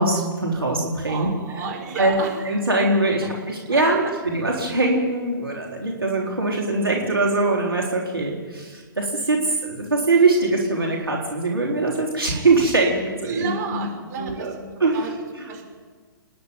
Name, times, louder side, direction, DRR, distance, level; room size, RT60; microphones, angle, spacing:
voice 1, 0.0-1.3 2.0-2.2 2.5-13.9 14.2-14.5 14.8-15.5, right 2 dB, 85° right, -2 dB, 3.9 m, -22 dB
voice 2, 1.1-2.4 3.7-3.9 13.3-14.5 14.9-15.1 15.5-15.6, right 5 dB, 45° right, 0 dB, 6.3 m, -31 dB
27.5 x 11.0 x 9.2 m, 1.5 s
figure-of-eight pair, 120°, 12 cm